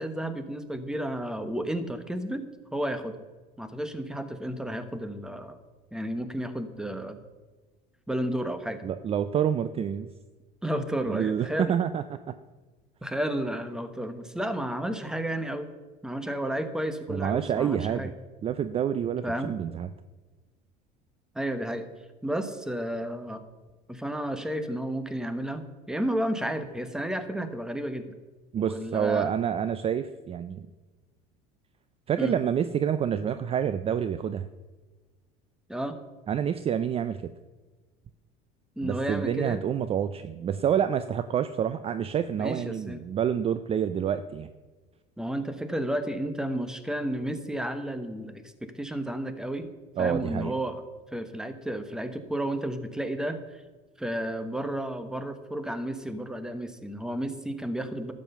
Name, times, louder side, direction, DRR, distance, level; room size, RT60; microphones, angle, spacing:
voice 1, 0.0-2.4 2.7-3.2 3.6-5.6 5.9-7.2 8.1-8.8 10.6-11.7 13.0-15.7 16.0-18.1 19.2-19.5 21.3-21.9 22.2-23.4 23.9-28.1 28.6-29.3 32.2-32.4 35.7-36.0 38.8-39.6 42.4-43.0 45.2-49.7 50.0-50.8 51.1-53.6 54.0-58.1, right 1 dB, 5° right, 10 dB, 1.1 m, -32 dB
voice 2, 8.8-10.1 11.1-12.4 17.1-18.1 18.4-19.9 28.5-30.7 32.1-34.5 36.3-37.3 38.8-44.5 50.0-50.5, right 8 dB, 30° right, 12 dB, 0.5 m, -28 dB
12.0 x 7.6 x 6.7 m, 1.3 s
supercardioid pair, 110°, 19 cm